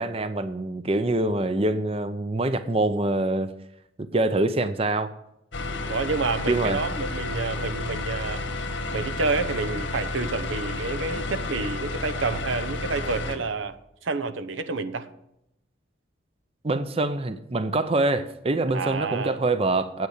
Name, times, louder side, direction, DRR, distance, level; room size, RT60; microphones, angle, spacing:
voice 1, 0.0-3.5 4.0-5.1 6.5-6.8 16.6-20.1, right 2 dB, 30° right, 0.6 m, -25 dB
sound 1, 5.5-13.4, left 2 dB, 80° left, 1.6 m, -31 dB
voice 2, 5.9-8.4 8.9-15.1 18.7-19.4, right 3 dB, 90° right, 0.9 m, -29 dB
9.5 x 8.5 x 6.5 m
head